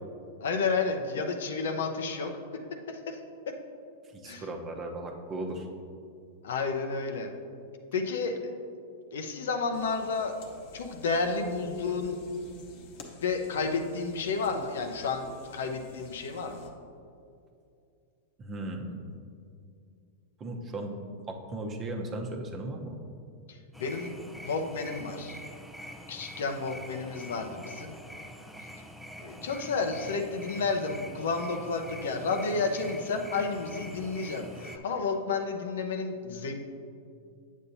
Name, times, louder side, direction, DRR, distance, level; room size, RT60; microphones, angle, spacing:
voice 1, 0.4-2.3 2.9-3.2 3.5-3.6 4.2-4.4 6.4-7.3 7.9-8.5 9.1-10.3 10.7-12.2 13.1-15.3 15.5-16.7 23.5-25.4 26.1-27.9 29.2-36.5, left 4 dB, 75° left, 5 dB, 0.7 m, -31 dB
voice 2, 4.1-5.7 18.4-19.1 20.4-21.0 21.3-23.0, right 2 dB, 30° right, 2 dB, 0.9 m, -36 dB
sound 1, 9.7-16.7, left 3 dB, 60° left, 1.0 m, -52 dB
sound 2, 23.7-34.8, equal, ahead, 0.5 m, -45 dB
8.4 x 7.2 x 2.7 m, 2.5 s
hypercardioid pair, 110°, 0 cm